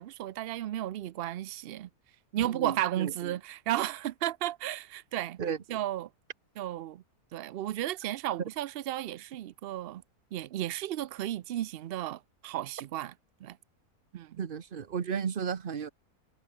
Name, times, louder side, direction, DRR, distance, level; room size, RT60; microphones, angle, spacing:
voice 1, 0.0-1.9 2.3-5.4 5.7-6.1 6.6-7.0 7.3-10.0 10.3-13.1 13.4-13.6 14.1-14.5, right 13 dB, 85° right, 0.5 m, -34 dB
voice 2, 2.4-3.3 5.4-5.6 14.4-15.9, right 7 dB, 40° right, 1.0 m, -34 dB
omnidirectional pair, 1.6 m